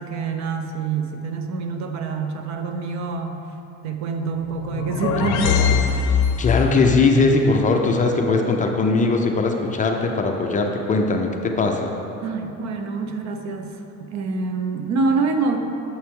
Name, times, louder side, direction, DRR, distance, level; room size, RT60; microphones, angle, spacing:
voice 1, 0.0-3.4 3.8-5.8 12.2-15.6, right 4 dB, 55° right, 6 dB, 0.7 m, -26 dB
sound 1, 4.5-6.8, left 6 dB, 55° left, 0.7 m, -21 dB
voice 2, 6.4-11.9, left 3 dB, 25° left, 2 dB, 0.5 m, -20 dB
8.6 x 7.0 x 3.7 m, 3.0 s
cardioid pair, 145°, 33 cm